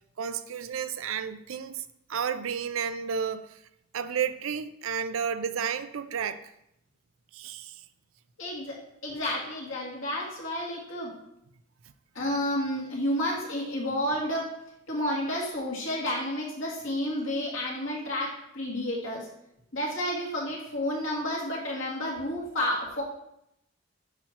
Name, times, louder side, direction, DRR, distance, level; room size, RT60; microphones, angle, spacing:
voice 1, 0.2-1.8 2.1-3.6 3.9-6.5 7.3-7.8, right 7 dB, 80° right, 0.5 m, -32 dB
voice 2, 8.4-8.8 9.0-11.1 12.1-14.5 14.9-19.3 19.7-23.0, left 1 dB, 75° left, 2.3 m, -30 dB
8.7 x 5.8 x 2.9 m
head